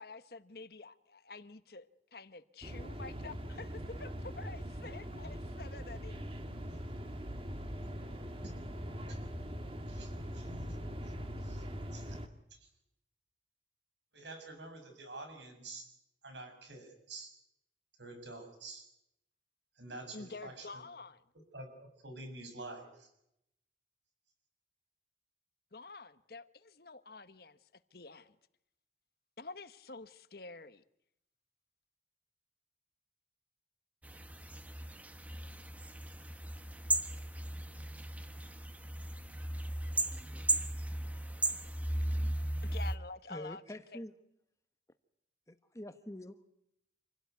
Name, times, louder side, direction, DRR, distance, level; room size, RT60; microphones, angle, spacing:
voice 1, 0.0-6.2 20.1-21.2 25.7-27.6 27.9-28.3 29.4-30.8 42.2-43.6 43.9-44.0, left 3 dB, 55° left, 1.1 m, -48 dB
sound 1, 2.6-12.3, equal, 30° right, 2.0 m, -42 dB
voice 2, 9.9-10.8 11.0-11.7 11.9-12.2 12.5-12.7 14.1-15.9 16.2-17.3 18.0-18.9 19.8-20.8 21.5-23.1, right 2 dB, 75° right, 6.8 m, -48 dB
sound 2, 34.0-43.0, right 1 dB, 10° right, 1.1 m, -36 dB
voice 3, 43.3-44.1 45.5-46.5, left 1 dB, 15° left, 1.2 m, -45 dB
27.5 x 17.0 x 9.5 m
head